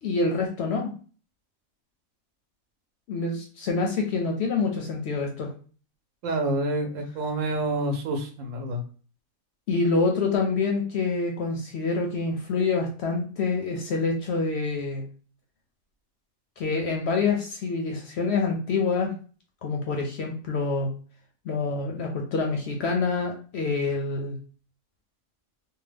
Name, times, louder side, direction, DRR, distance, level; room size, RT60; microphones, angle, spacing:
voice 1, 0.0-0.9 3.1-5.5 9.7-15.0 16.6-19.1 19.6-20.9 21.4-24.4, left 4 dB, 65° left, 1 dB, 0.7 m, -26 dB
voice 2, 6.2-8.8, right 1 dB, 70° right, 4 dB, 1.0 m, -28 dB
2.8 x 2.2 x 3.3 m, 0.40 s
omnidirectional pair, 1.4 m